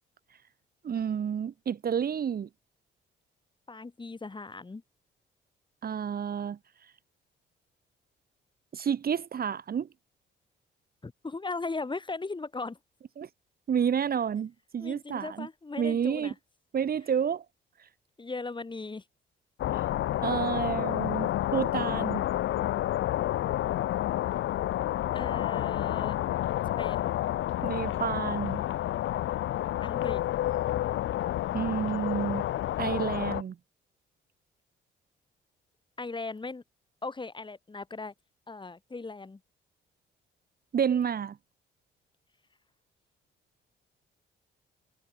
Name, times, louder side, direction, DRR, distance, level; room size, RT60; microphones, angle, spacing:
voice 1, 0.8-2.5 5.8-6.6 8.7-9.9 13.2-13.3 13.7-15.5 15.8-16.3 16.7-17.4 19.7-19.8 20.2-22.2 27.6-28.6 31.5-32.4 32.8-33.6 40.7-41.4, right 8 dB, 50° right, 1.8 m, -30 dB
voice 2, 3.7-4.8 11.0-12.8 14.8-16.4 18.2-19.0 25.1-26.2 26.8-27.1 29.8-30.2 36.0-36.6 37.0-38.1 38.5-39.4, left 3 dB, 25° left, 5.4 m, -38 dB
sound 1, 19.6-33.4, left 13 dB, 80° left, 4.6 m, -30 dB
cardioid pair, 90°, 20 cm